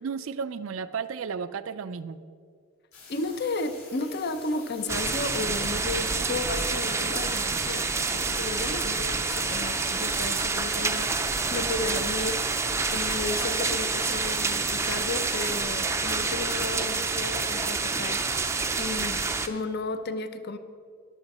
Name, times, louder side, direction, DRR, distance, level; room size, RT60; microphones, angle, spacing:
voice 1, 0.0-2.2, right 6 dB, 65° right, 13 dB, 0.4 m, -33 dB
sound 1, 2.9-15.6, left 4 dB, 65° left, 3.7 m, -48 dB
voice 2, 3.1-12.4 12.9-18.2 18.8-20.6, left 2 dB, 45° left, 10 dB, 0.7 m, -33 dB
sound 2, 4.9-19.5, right 4 dB, 10° right, 0.5 m, -28 dB
14.0 x 11.5 x 4.2 m, 2.2 s
head